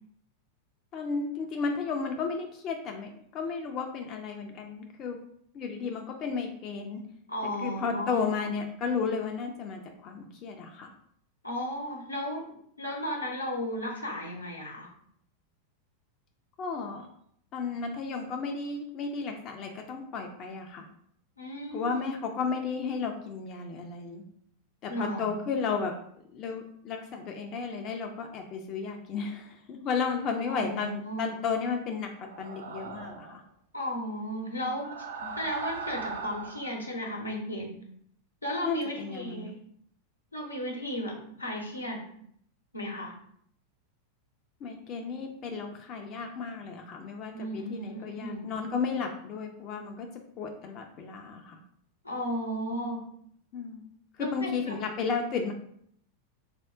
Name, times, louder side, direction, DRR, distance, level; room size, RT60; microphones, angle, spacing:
voice 1, 0.9-5.2 5.5-7.0 7.6-10.9 16.6-17.1 17.5-20.9 21.7-24.2 24.8-25.9 26.3-33.4 35.2-35.4 38.6-39.5 44.6-50.1 50.4-51.6 53.5-53.8 54.2-55.5, left 5 dB, 35° left, 3 dB, 0.4 m, -33 dB
voice 2, 7.3-8.5 11.4-12.4 12.8-14.9 21.4-22.1 24.9-25.4 30.5-31.3 33.7-34.9 35.3-37.7 38.4-39.5 40.3-42.0 42.7-43.1 47.3-48.4 52.0-53.0 54.2-54.8, equal, 85° left, -1 dB, 0.7 m, -34 dB
sound 1, 32.2-33.4 34.6-36.8, right 5 dB, 65° right, 0.4 m, -39 dB
3.5 x 2.1 x 3.5 m, 0.67 s
figure-of-eight pair, 90°, 0 cm